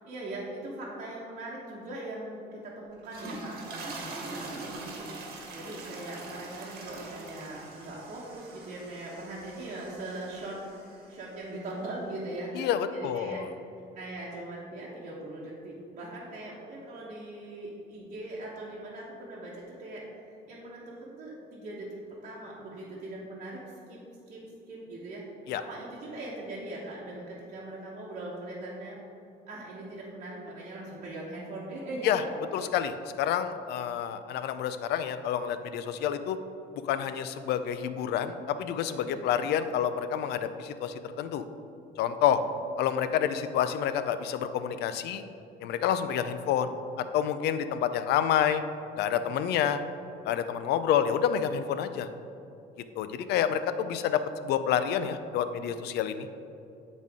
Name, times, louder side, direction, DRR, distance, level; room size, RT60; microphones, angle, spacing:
voice 1, 0.0-5.2 5.5-10.6 11.1-13.4 13.9-21.9 22.2-24.0 24.3-25.2 25.5-29.0 29.5-32.3 38.9-39.2, right 1 dB, 45° right, -6 dB, 1.2 m, -40 dB
sound 1, 2.9-11.3, right 2 dB, 65° right, 1.2 m, -43 dB
voice 2, 12.6-13.5 25.5-25.6 32.0-32.2 32.5-36.4 36.8-41.4 42.0-42.4 42.8-45.2 45.6-48.6 49.0-49.8 50.2-52.1 53.0-56.3, left 9 dB, 75° left, 11 dB, 0.4 m, -28 dB
8.7 x 4.1 x 3.6 m, 2.6 s
cardioid pair, 110°, 17 cm